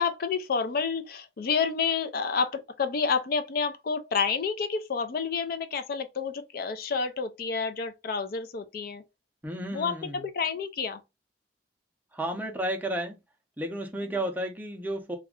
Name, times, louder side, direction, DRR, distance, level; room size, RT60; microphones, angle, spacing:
voice 1, 0.0-9.0 9.7-11.0, left 5 dB, 55° left, 0.4 m, -29 dB
voice 2, 9.4-10.3 12.1-13.2 13.6-15.2, right 1 dB, 10° right, 0.5 m, -32 dB
2.4 x 2.1 x 3.5 m
head